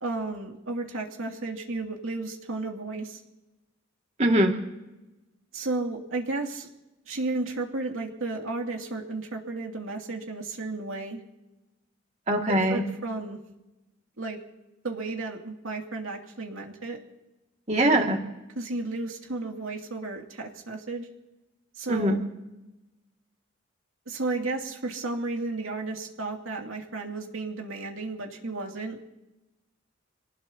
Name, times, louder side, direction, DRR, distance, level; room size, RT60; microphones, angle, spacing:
voice 1, 0.0-3.2 5.5-6.7 7.1-11.2 12.5-13.4 14.2-14.4 14.8-17.0 18.6-21.1 21.8-22.2 24.1-29.0, right 3 dB, 90° right, 1 dB, 2.5 m, -33 dB
voice 2, 4.2-4.5 12.3-12.8 17.7-18.2 21.9-22.2, right 1 dB, 35° right, 2 dB, 2.1 m, -22 dB
26.5 x 18.5 x 2.8 m, 0.99 s
head